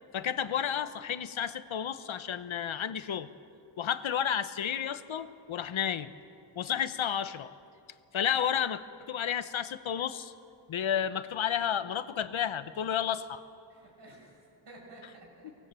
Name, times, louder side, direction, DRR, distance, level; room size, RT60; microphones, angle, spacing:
voice 1, 0.1-3.3 3.8-6.1 6.6-7.5 8.1-8.8 9.1-10.3 10.7-13.4, left 9 dB, 75° left, 12 dB, 1.0 m, -31 dB
voice 2, 13.7-15.6, right 2 dB, 60° right, -2 dB, 7.0 m, -53 dB
24.5 x 19.0 x 7.6 m, 2.5 s
wide cardioid pair, 165°, 48 cm